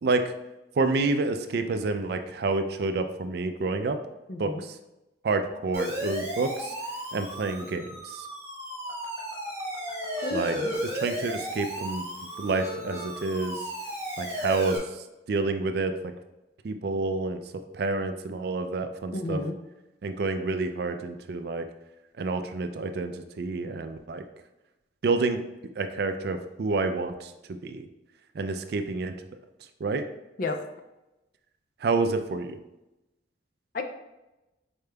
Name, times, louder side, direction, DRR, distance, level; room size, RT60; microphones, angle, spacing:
voice 1, 0.8-4.0 4.4-4.5 5.2-6.7 7.1-8.3 10.3-10.6 10.8-12.0 12.4-13.6 14.2-14.8 15.3-16.1 16.6-17.4 17.7-19.4 20.0-21.6 22.2-24.2 25.0-25.4 25.8-27.3 27.6-27.8 28.4-29.1 29.8-30.0 31.8-32.6, right 3 dB, 55° right, 8 dB, 0.4 m, -28 dB
voice 2, 4.3-4.6 10.2-10.7 19.1-19.6 30.4-30.6 33.7-33.8, left 3 dB, 45° left, 6 dB, 0.4 m, -31 dB
Siren, 5.7-14.8, equal, 15° right, 1.1 m, -34 dB
5.0 x 4.3 x 2.3 m, 0.98 s
head